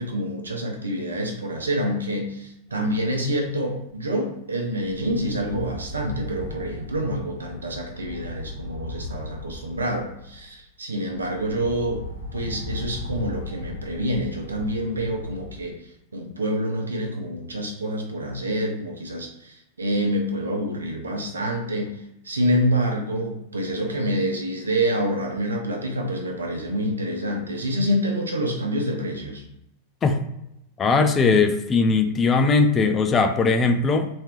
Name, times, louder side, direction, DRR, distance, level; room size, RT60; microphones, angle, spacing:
voice 1, 0.0-12.0 12.3-15.8 16.1-29.4, equal, 75° right, 1 dB, 0.7 m, -27 dB
sound 1, 2.7-3.5 3.8-4.0 4.8-10.6 10.9-15.6, left 2 dB, 65° left, 0.6 m, -37 dB
voice 2, 30.8-34.1, left 4 dB, 25° left, 7 dB, 0.4 m, -19 dB
3.1 x 2.8 x 3.1 m, 0.82 s
figure-of-eight pair, 90°, 0 cm